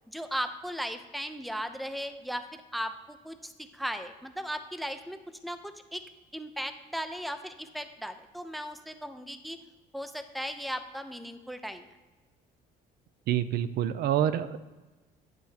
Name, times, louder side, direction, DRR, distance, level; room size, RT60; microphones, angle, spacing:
voice 1, 0.1-6.0 6.3-9.6 9.9-11.9, equal, ahead, 9 dB, 0.6 m, -37 dB
voice 2, 13.3-14.6, right 10 dB, 70° right, 13 dB, 0.5 m, -27 dB
9.5 x 9.0 x 2.9 m, 1.2 s
cardioid pair, 110°, 17 cm